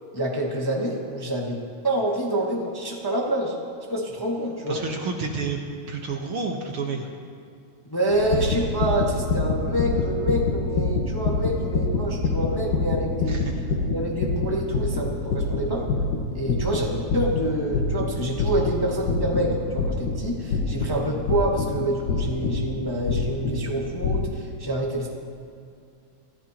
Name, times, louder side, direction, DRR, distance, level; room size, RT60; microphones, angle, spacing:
voice 1, 0.1-3.5 3.9-4.8 7.9-13.5 13.9-15.9 16.3-25.1, right 1 dB, 20° left, -3 dB, 0.5 m, -27 dB
voice 2, 4.7-5.6 5.9-7.1 13.3-13.4 20.8-20.9, right 4 dB, 60° right, 2 dB, 1.5 m, -30 dB
sound 1, 8.1-24.3, left 3 dB, 90° left, 3.2 m, -26 dB
26.0 x 14.0 x 3.0 m, 2.4 s
omnidirectional pair, 3.7 m